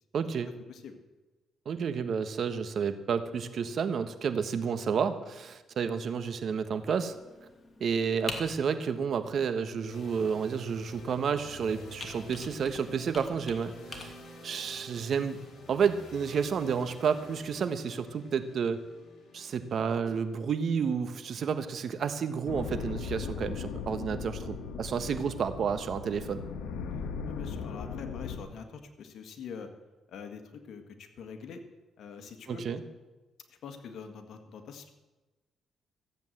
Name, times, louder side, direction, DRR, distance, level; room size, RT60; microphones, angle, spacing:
voice 1, 0.1-0.5 1.6-7.1 7.8-14.1 14.4-15.4 15.7-18.8 19.3-26.4 32.5-32.8, right 6 dB, 55° right, 10 dB, 1.2 m, -30 dB
Computer keyboard, 6.7-14.0, left 2 dB, 30° left, 2.5 m, -46 dB
sound 1, 9.9-23.7, left 1 dB, 50° left, 3.6 m, -51 dB
sound 2, 22.5-28.4, left 5 dB, 90° left, 1.4 m, -38 dB
voice 2, 27.3-29.7 30.1-31.6 32.0-32.6 33.6-34.9, left 6 dB, 70° left, 6 dB, 1.7 m, -44 dB
14.5 x 8.1 x 7.8 m, 1.2 s
cardioid pair, 90°, 0 cm